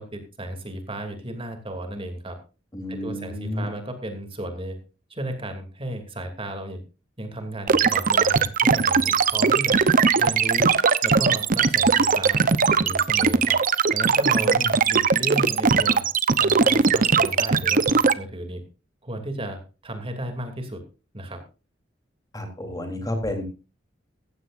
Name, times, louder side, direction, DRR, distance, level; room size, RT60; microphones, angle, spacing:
voice 1, 0.0-2.4 2.9-4.8 5.1-6.8 7.2-9.8 10.2-10.8 11.0-12.4 12.8-13.6 13.9-16.0 16.4-18.6 19.0-20.8 21.1-21.4, right 1 dB, 30° right, 6 dB, 2.8 m, -34 dB
voice 2, 2.7-3.7 14.4-14.7 22.3-23.4, left 1 dB, 20° left, 5 dB, 3.5 m, -31 dB
sound 1, 7.7-18.1, right 5 dB, 45° right, 0.9 m, -19 dB
15.5 x 15.5 x 2.6 m, 0.32 s
head